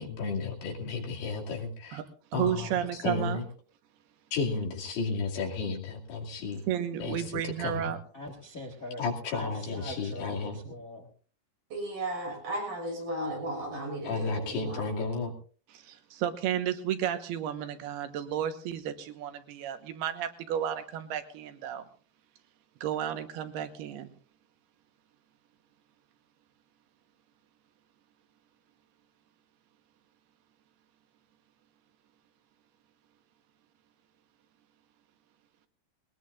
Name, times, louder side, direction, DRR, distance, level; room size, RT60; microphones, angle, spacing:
voice 1, 0.0-2.0 2.3-3.5 4.3-6.7 7.0-7.9 9.0-10.6 14.0-15.3, left 4 dB, 85° left, 0 dB, 4.6 m, -33 dB
voice 2, 2.3-3.4 6.7-8.0 15.7-19.3 19.6-21.9 22.8-24.1, right 10 dB, 85° right, 8 dB, 3.1 m, -32 dB
voice 3, 8.1-9.0 9.3-11.1, left 1 dB, 70° left, 3 dB, 0.8 m, -42 dB
voice 4, 11.7-14.8, right 1 dB, 60° right, 0 dB, 8.1 m, -35 dB
21.0 x 19.5 x 2.5 m, 0.41 s
omnidirectional pair, 4.5 m